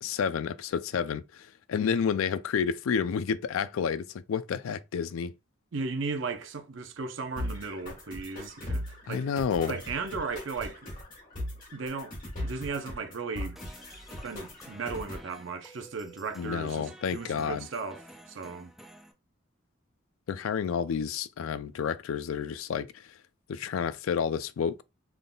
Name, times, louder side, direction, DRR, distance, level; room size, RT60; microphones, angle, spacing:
voice 1, 0.0-5.3 9.1-9.8 16.4-17.7 20.3-22.9 23.5-24.8, left 6 dB, 85° left, 0.3 m, -30 dB
voice 2, 5.7-9.3 9.7-10.9 11.7-12.2 12.4-13.6 14.2-18.7, right 4 dB, 65° right, 0.6 m, -36 dB
sound 1, 7.4-15.3, left 1 dB, 45° left, 2.1 m, -39 dB
sound 2, 13.6-19.1, right 1 dB, ahead, 0.4 m, -51 dB
3.8 x 3.5 x 2.2 m
head